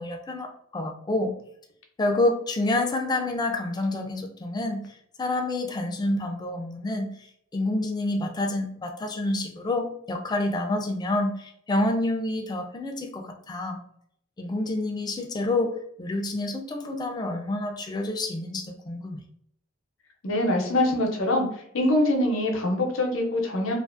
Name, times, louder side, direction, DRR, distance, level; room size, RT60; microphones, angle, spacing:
voice 1, 0.0-1.3 2.0-7.1 7.5-13.8 14.4-15.7 16.0-19.2, left 2 dB, 20° left, 4 dB, 0.3 m, -28 dB
voice 2, 20.2-21.5 21.7-23.7, left 1 dB, 75° left, 2 dB, 0.6 m, -24 dB
2.4 x 2.4 x 2.4 m, 0.68 s
head